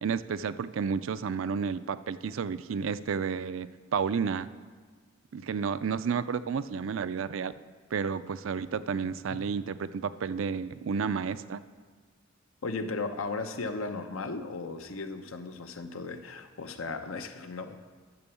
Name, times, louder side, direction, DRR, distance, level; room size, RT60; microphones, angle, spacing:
voice 1, 0.0-4.5 5.3-7.5 7.9-11.6, right 6 dB, 70° right, 14 dB, 0.4 m, -31 dB
voice 2, 12.6-17.8, left 3 dB, 85° left, 8 dB, 0.8 m, -36 dB
11.0 x 6.9 x 6.9 m, 1.5 s
head